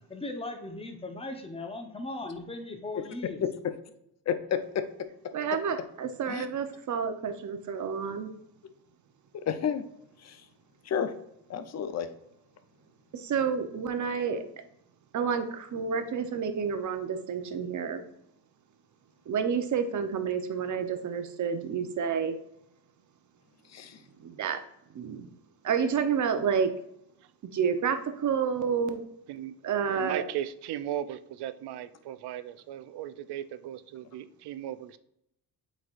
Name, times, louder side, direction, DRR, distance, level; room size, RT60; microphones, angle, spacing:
voice 1, 0.1-3.4, left 2 dB, 15° left, 4 dB, 1.0 m, -38 dB
voice 2, 4.3-4.6 6.3-6.5 9.3-9.8 10.2-10.4 10.8-11.1 11.5-12.1 23.7-24.0, left 8 dB, 40° left, 10 dB, 0.7 m, -30 dB
voice 3, 5.3-8.3 13.1-14.4 15.1-18.0 19.3-22.4 24.2-24.6 24.9-25.3 25.6-26.7 27.4-29.0 29.6-30.2, right 6 dB, 45° right, 8 dB, 0.9 m, -29 dB
voice 4, 29.3-29.6 29.9-35.0, right 11 dB, 80° right, 13 dB, 0.6 m, -37 dB
8.0 x 4.7 x 2.5 m, 0.78 s
cardioid pair, 130°, 39 cm